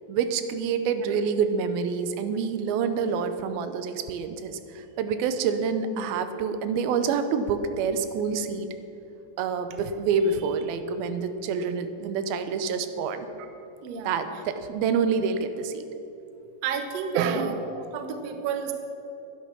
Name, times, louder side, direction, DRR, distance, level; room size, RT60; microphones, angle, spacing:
voice 1, 0.1-8.7 9.4-13.3 14.1-15.9 17.1-17.6, right 6 dB, 90° right, 9 dB, 2.6 m, -27 dB
voice 2, 13.8-14.2 16.6-18.7, right 6 dB, 70° right, 6 dB, 1.5 m, -31 dB
12.0 x 10.5 x 6.0 m, 2.9 s
omnidirectional pair, 4.2 m